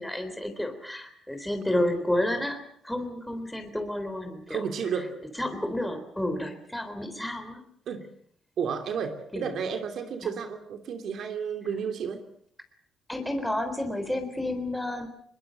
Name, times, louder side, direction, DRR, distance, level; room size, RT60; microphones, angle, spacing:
voice 1, 0.0-2.6 2.8-4.7 5.4-7.6 9.3-9.5 13.1-15.1, left 1 dB, 5° left, 6 dB, 3.7 m, -30 dB
voice 2, 4.5-5.2 7.9-8.1 8.6-12.2, right 6 dB, 70° right, 6 dB, 2.9 m, -32 dB
22.5 x 22.0 x 7.8 m, 0.65 s
cardioid pair, 90°, 0 cm